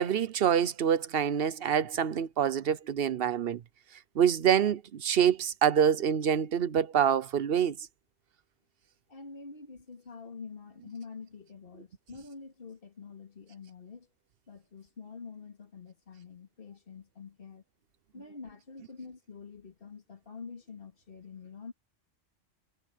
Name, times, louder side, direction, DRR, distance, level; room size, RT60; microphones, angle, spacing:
voice 1, 0.0-3.6 4.1-7.8, right 8 dB, 55° right, 0.9 m, -26 dB
voice 2, 9.1-14.1 14.5-17.6 18.1-21.7, left 5 dB, 50° left, 2.5 m, -46 dB
omnidirectional pair, 1.3 m